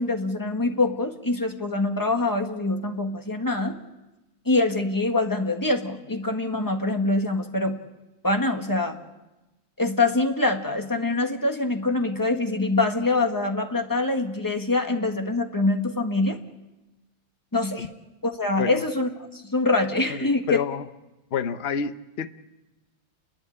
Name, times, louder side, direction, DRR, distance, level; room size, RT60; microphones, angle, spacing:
voice 1, 0.0-3.8 4.4-7.8 8.2-9.0 9.8-16.4 17.5-17.9 18.2-20.6, left 2 dB, 10° left, 5 dB, 1.3 m, -24 dB
voice 2, 20.2-20.8 21.3-22.3, left 7 dB, 50° left, 10 dB, 0.7 m, -28 dB
30.0 x 12.0 x 9.9 m, 1.1 s
omnidirectional pair, 2.2 m